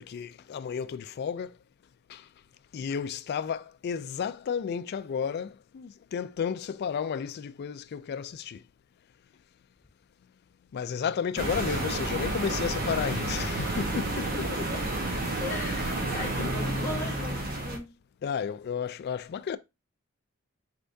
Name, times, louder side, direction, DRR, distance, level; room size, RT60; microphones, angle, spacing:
voice 1, 0.0-1.6 2.1-2.2 2.7-8.6 10.7-14.7 16.4-16.5 18.2-19.6, left 7 dB, 50° left, 0.3 m, -32 dB
sound 1, 11.4-17.8, right 2 dB, 45° right, 1.0 m, -30 dB
voice 2, 14.3-14.8 15.4-17.9, left 2 dB, 10° left, 1.1 m, -38 dB
4.4 x 3.5 x 2.6 m
head